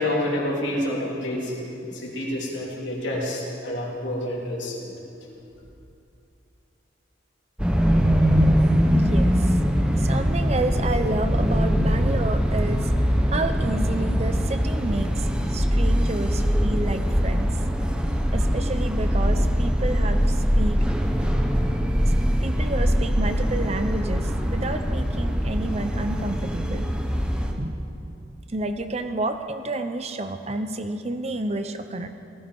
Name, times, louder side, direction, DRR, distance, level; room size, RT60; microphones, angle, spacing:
voice 1, 0.0-4.9, left 1 dB, 70° left, -4 dB, 3.6 m, -28 dB
sound 1, 7.6-27.5, equal, 5° right, 1.1 m, -22 dB
voice 2, 8.9-9.6 10.0-17.6 18.3-20.8 22.0-22.1 22.4-26.9 27.6-27.8 28.5-32.1, right 2 dB, 35° right, 8 dB, 0.8 m, -30 dB
17.0 x 14.0 x 5.5 m, 2.7 s
head